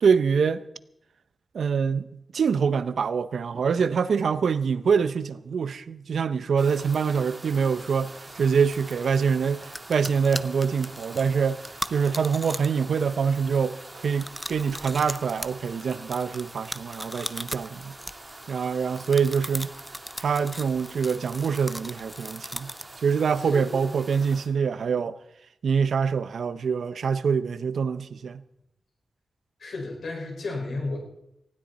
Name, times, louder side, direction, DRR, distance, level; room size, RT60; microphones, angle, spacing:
voice 1, 0.0-0.6 1.5-11.6 11.9-17.9 18.5-19.7 20.2-22.7 23.0-25.2 25.6-28.4, right 6 dB, 75° right, 0.7 m, -25 dB
sound 1, 6.6-24.5, right 2 dB, 15° right, 2.5 m, -45 dB
sound 2, 9.6-12.8 13.1-13.5 14.1-18.6 19.0-23.0, equal, 5° left, 0.5 m, -37 dB
voice 2, 23.4-24.0 29.6-31.0, left 3 dB, 70° left, 5.3 m, -33 dB
19.0 x 16.0 x 4.2 m
wide cardioid pair, 170°, 0 cm